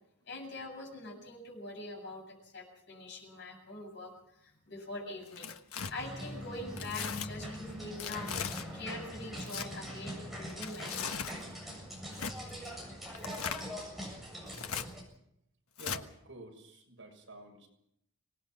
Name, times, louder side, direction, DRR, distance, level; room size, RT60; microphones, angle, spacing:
voice 1, 0.3-5.6 5.9-8.3 8.7-11.3, left 2 dB, 50° left, 2 dB, 7.7 m, -44 dB
Tearing, 5.2-5.9 6.8-7.3 8.0-8.7 9.3-9.7 10.5-11.4 12.1-12.4 13.1-13.7 14.5-14.9 15.8-16.0, left 7 dB, 90° left, 1.4 m, -38 dB
sound 1, 6.0-15.0, equal, ahead, 7.5 m, -43 dB
voice 2, 15.8-17.7, right 2 dB, 65° right, 2 dB, 6.7 m, -49 dB
25.0 x 19.5 x 6.1 m, 0.78 s
head